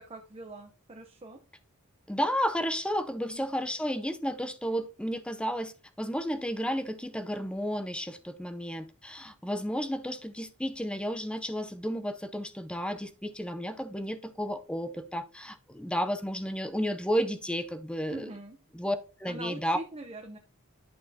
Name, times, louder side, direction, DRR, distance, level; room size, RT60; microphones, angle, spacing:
voice 1, 0.0-1.4 3.2-3.5 18.1-18.6 19.2-20.4, right 2 dB, 25° right, 0.8 m, -43 dB
voice 2, 2.1-18.3 18.7-19.8, equal, 5° left, 0.6 m, -32 dB
11.0 x 6.6 x 2.8 m
head